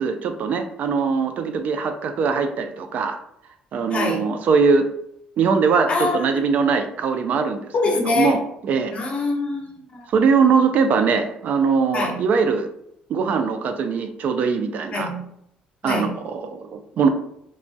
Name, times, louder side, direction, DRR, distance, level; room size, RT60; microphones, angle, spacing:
voice 1, 0.0-3.2 3.7-4.9 5.4-7.7 8.0-8.9 10.1-12.7 13.1-15.1 15.8-17.1, right 5 dB, 55° right, 7 dB, 0.3 m, -21 dB
voice 2, 3.9-4.3 5.9-6.3 7.7-8.4 8.9-10.1 11.9-12.2 14.9-15.2 15.8-16.1, left 3 dB, 40° left, 1 dB, 0.8 m, -24 dB
3.0 x 2.2 x 2.6 m, 0.75 s
cardioid pair, 105°, 3 cm